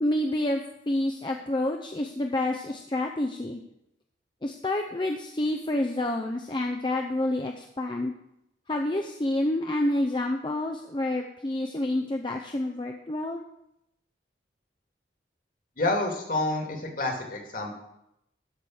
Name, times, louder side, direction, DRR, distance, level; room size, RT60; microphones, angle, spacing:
voice 1, 0.0-3.6 4.4-8.1 8.7-13.4, left 1 dB, 25° left, 3 dB, 0.5 m, -28 dB
voice 2, 15.8-17.7, left 2 dB, 50° left, 2 dB, 2.0 m, -28 dB
13.0 x 5.0 x 6.2 m, 0.81 s
head